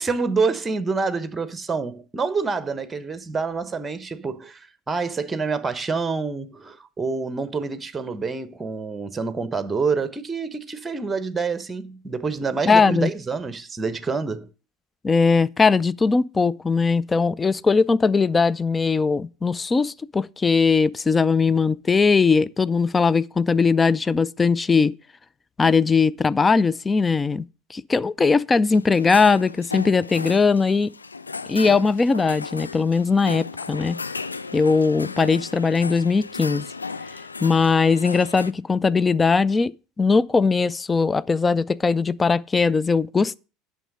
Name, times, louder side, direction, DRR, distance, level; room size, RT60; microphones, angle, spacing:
voice 1, 0.0-14.5, right 4 dB, 20° right, 1.0 m, -27 dB
voice 2, 12.7-13.1 15.0-24.9 25.6-27.4 27.7-30.9 31.5-34.0 34.5-36.6 37.4-39.7 40.0-43.4, left 4 dB, 20° left, 0.4 m, -20 dB
sound 1, 28.7-38.5, left 4 dB, 85° left, 0.4 m, -35 dB
9.1 x 6.4 x 6.6 m
figure-of-eight pair, 70°, 0 cm